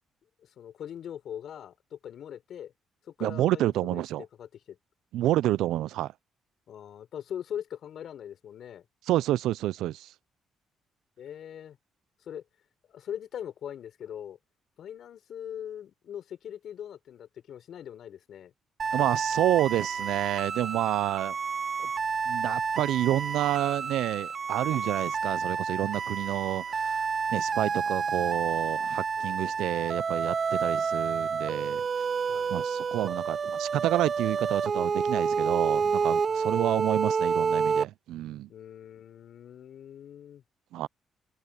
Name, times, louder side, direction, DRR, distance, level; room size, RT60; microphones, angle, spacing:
voice 1, 0.4-2.7 3.0-4.0 4.4-4.8 6.7-8.9 11.2-11.8 12.2-12.4 12.9-14.4 14.8-18.5 29.2-29.6 32.3-32.6 36.3-36.5 38.5-40.4, left 9 dB, 65° left, 6.4 m, -41 dB
voice 2, 3.2-4.2 5.1-6.1 9.1-10.1 18.9-21.4 21.8-21.9 22.3-31.8 32.5-38.5 40.7-40.9, right 14 dB, 85° right, 0.4 m, -29 dB
sound 1, 18.8-37.8, right 5 dB, 45° right, 1.9 m, -29 dB
open air
cardioid pair, 90°, 0 cm